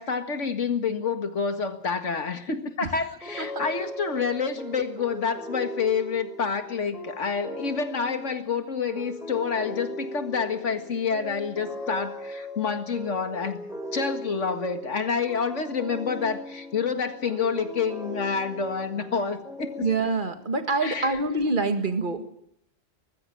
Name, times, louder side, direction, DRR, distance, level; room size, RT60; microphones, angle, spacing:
voice 1, 0.0-13.6 13.9-19.9 20.8-21.2, left 5 dB, 70° left, 8 dB, 2.1 m, -28 dB
sound 1, 3.2-20.4, left 1 dB, ahead, 4.6 m, -39 dB
voice 2, 19.8-22.2, right 3 dB, 40° right, 7 dB, 2.1 m, -25 dB
19.5 x 15.0 x 10.0 m, 0.72 s
omnidirectional pair, 1.3 m